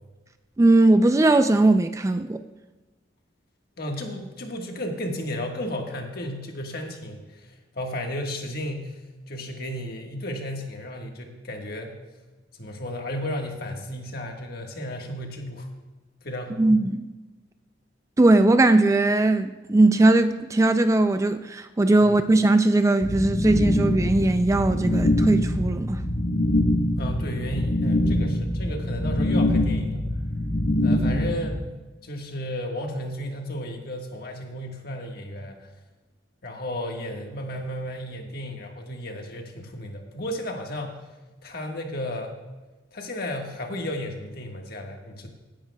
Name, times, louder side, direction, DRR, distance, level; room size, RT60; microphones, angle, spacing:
voice 1, 0.6-2.4 16.6-17.1 18.2-26.0, right 2 dB, 15° right, 0.3 m, -19 dB
voice 2, 3.8-7.2 7.7-9.0 9.3-12.0 12.6-15.7 16.2-16.7 22.0-22.2 27.0-30.0 30.8-31.6 32.0-35.7 36.4-41.0 41.4-42.4 42.9-45.3, left 1 dB, 55° left, 1.5 m, -33 dB
sound 1, 23.0-31.6, left 1 dB, 90° left, 1.2 m, -24 dB
16.0 x 10.5 x 2.3 m
head